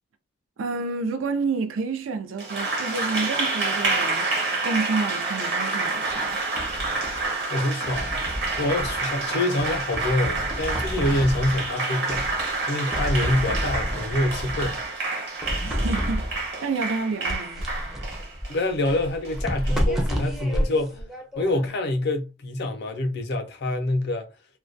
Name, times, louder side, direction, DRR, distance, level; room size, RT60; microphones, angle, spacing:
voice 1, 0.6-4.3 4.6-6.4 15.6-17.7, right 4 dB, 75° right, 0.4 m, -29 dB
Applause, 2.4-20.2, right 3 dB, 55° right, 1.1 m, -28 dB
sound 1, 6.1-7.3 7.8-9.2 9.6-11.7 12.1-12.6 12.9-14.9 15.4-16.5 17.3-21.8, equal, ahead, 0.5 m, -30 dB
voice 2, 7.5-12.3 12.7-14.8 18.5-21.0 21.4-24.3, left 1 dB, 55° left, 0.5 m, -26 dB
2.2 x 2.2 x 2.5 m
head